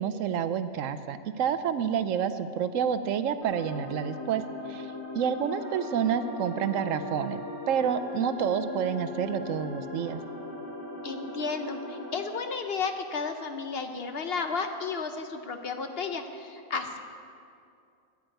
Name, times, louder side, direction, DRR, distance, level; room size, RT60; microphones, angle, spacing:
voice 1, 0.0-4.4 4.7-7.4 7.7-10.2, right 8 dB, 75° right, 11 dB, 0.9 m, -29 dB
sound 1, 3.4-12.1, left 3 dB, 85° left, 3.4 m, -39 dB
voice 2, 11.0-17.0, left 5 dB, 55° left, 6 dB, 0.9 m, -33 dB
9.7 x 8.7 x 9.2 m, 2.5 s
omnidirectional pair, 1.4 m